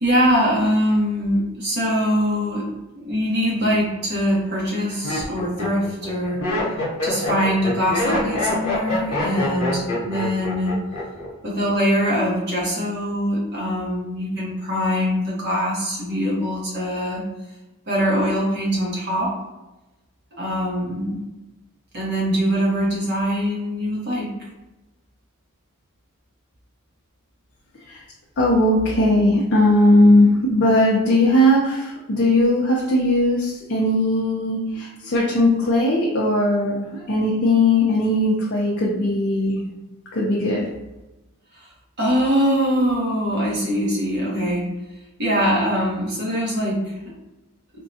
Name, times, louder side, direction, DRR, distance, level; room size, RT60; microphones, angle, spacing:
voice 1, 0.0-2.7 2.9-6.4 7.0-10.7 11.4-17.2 17.9-19.4 20.4-21.2 21.9-24.3 42.0-44.7 45.2-46.9, equal, 50° right, -5 dB, 1.0 m, -22 dB
Laughter, 3.6-4.0 4.7-11.3 11.6-12.1, left 2 dB, 70° left, 0.9 m, -26 dB
voice 2, 28.4-39.6 40.1-40.6, left 1 dB, 50° left, -5 dB, 0.5 m, -18 dB
3.6 x 2.2 x 2.7 m, 1.0 s
head